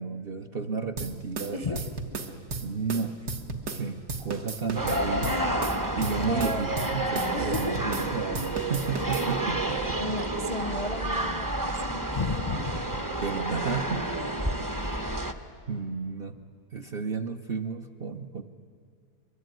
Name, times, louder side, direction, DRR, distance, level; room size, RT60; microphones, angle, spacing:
voice 1, 0.0-1.8 2.6-3.2 3.7-5.4 6.0-10.2 13.2-14.1 14.8-15.0 15.7-16.4 16.7-18.4, right 5 dB, 45° right, 4 dB, 0.8 m, -32 dB
sound 1, 1.0-8.1 8.3-9.3, right 3 dB, 60° right, 1.9 m, -35 dB
voice 2, 1.5-1.9 6.3-6.9 7.3-7.8 10.0-13.0, left 3 dB, 35° left, 8 dB, 0.6 m, -34 dB
sound 2, 4.7-15.3, right 1 dB, 15° right, 0.7 m, -30 dB
23.5 x 22.5 x 9.3 m, 2.3 s
omnidirectional pair, 1.8 m